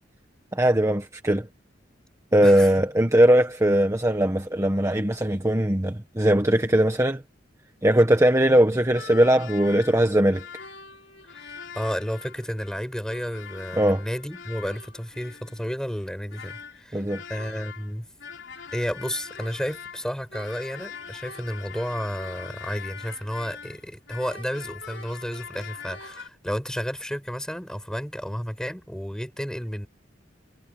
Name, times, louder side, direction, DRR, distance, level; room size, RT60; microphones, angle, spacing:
voice 1, 0.5-1.5 2.3-7.2 7.8-10.4 13.8-14.0 16.9-17.2, right 1 dB, 15° right, 1.4 m, -20 dB
sound 1, 8.9-17.9 18.2-26.3, left 6 dB, 70° left, 4.9 m, -42 dB
voice 2, 11.3-18.1 18.7-29.9, equal, 5° left, 6.2 m, -32 dB
head